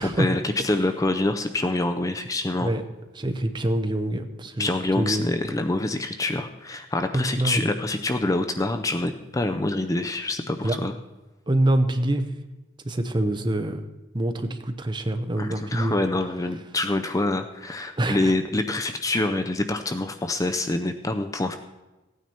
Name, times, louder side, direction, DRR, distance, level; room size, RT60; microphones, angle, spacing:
voice 1, 0.0-2.7 4.6-10.9 15.4-21.6, left 2 dB, 15° left, 7 dB, 0.4 m, -26 dB
voice 2, 3.1-5.3 7.1-7.7 10.6-10.8 11.5-12.3 12.8-13.8 14.1-15.9 18.0-18.3, right 1 dB, 25° right, 8 dB, 0.7 m, -25 dB
15.5 x 9.3 x 4.3 m, 1.1 s
head